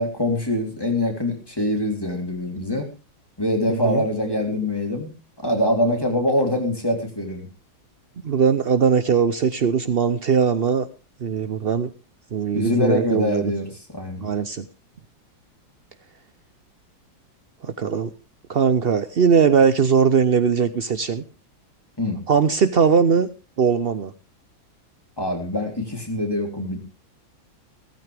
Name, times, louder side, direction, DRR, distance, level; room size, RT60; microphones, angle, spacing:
voice 1, 0.0-2.9 3.4-7.5 12.5-14.3 22.0-22.2 25.2-26.8, left 1 dB, 10° left, 2 dB, 3.3 m, -24 dB
voice 2, 3.7-4.0 8.2-10.9 11.2-11.9 12.3-13.4 14.2-14.7 17.6-18.1 18.5-21.2 22.3-23.3 23.6-24.1, right 6 dB, 80° right, 12 dB, 0.5 m, -20 dB
16.0 x 14.0 x 3.4 m, 0.31 s
omnidirectional pair, 2.1 m